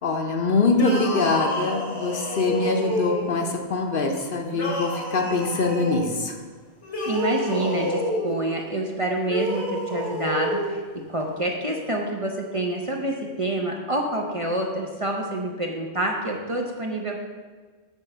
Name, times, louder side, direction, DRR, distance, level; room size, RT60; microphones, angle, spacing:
voice 1, 0.0-6.4, left 3 dB, 55° left, 3 dB, 0.9 m, -24 dB
sound 1, 0.7-3.5 4.5-6.0 6.8-8.3 9.2-10.7, equal, 90° left, 1.8 m, -29 dB
voice 2, 7.1-10.8 11.1-17.2, right 1 dB, 35° right, 0 dB, 0.7 m, -27 dB
7.4 x 4.2 x 6.6 m, 1.4 s
omnidirectional pair, 1.1 m